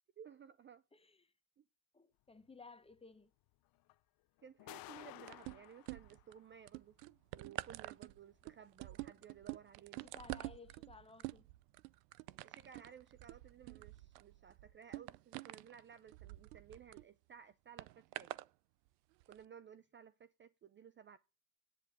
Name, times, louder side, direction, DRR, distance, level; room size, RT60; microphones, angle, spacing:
voice 1, 0.2-0.8 1.6-1.7 4.4-7.0 7.3-10.1 12.4-18.3 19.3-21.2, right 8 dB, 25° right, 0.5 m, -57 dB
voice 2, 1.9-3.3 10.1-11.4, left 4 dB, 10° left, 1.1 m, -57 dB
sound 1, 2.9-3.0 3.9-4.0 4.4-6.5 8.0-8.3 9.2-9.3, left 18 dB, 50° left, 0.7 m, -54 dB
sound 2, 5.3-6.3 6.7-17.0 17.8-18.5 19.2-19.3, right 20 dB, 90° right, 0.6 m, -47 dB
17.5 x 8.4 x 3.6 m
supercardioid pair, 100°, 47 cm